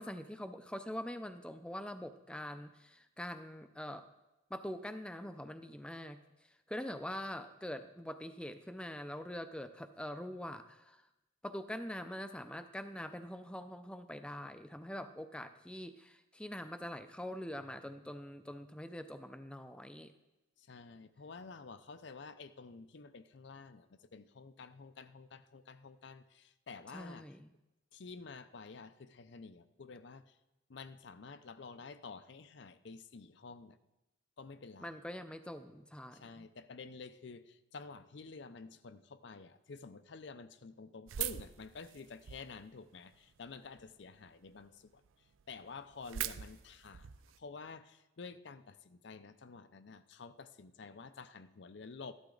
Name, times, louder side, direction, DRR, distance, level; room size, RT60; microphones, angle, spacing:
voice 1, 0.0-4.1 4.5-11.1 11.4-20.1 26.9-27.5 34.8-36.5, equal, 5° left, 9 dB, 0.5 m, -44 dB
voice 2, 20.6-27.3 27.9-30.4 30.7-33.8 34.4-35.0 36.1-45.0 45.5-47.1 47.4-52.1, left 4 dB, 60° left, 13 dB, 0.5 m, -50 dB
sound 1, 41.1-42.6 43.1-43.8 44.3-44.4 44.6-44.7 45.1-45.2 45.3-47.4, right 11 dB, 80° right, 0.5 m, -41 dB
14.0 x 12.0 x 3.9 m, 0.99 s
head